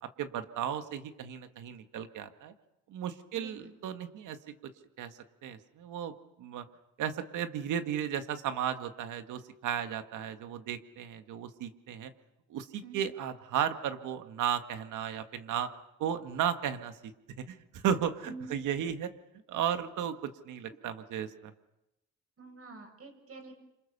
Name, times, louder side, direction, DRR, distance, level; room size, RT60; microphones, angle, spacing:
voice 1, 0.0-2.5 2.9-4.4 5.0-6.7 7.0-12.1 12.5-15.7 16.0-17.1 17.4-19.1 19.5-21.5, right 9 dB, 85° right, 8 dB, 1.9 m, -35 dB
voice 2, 3.3-3.7 12.8-13.0 18.2-18.7 22.4-23.5, right 3 dB, 50° right, 5 dB, 7.1 m, -46 dB
29.0 x 26.5 x 6.9 m, 0.90 s
cardioid pair, 90°, 30 cm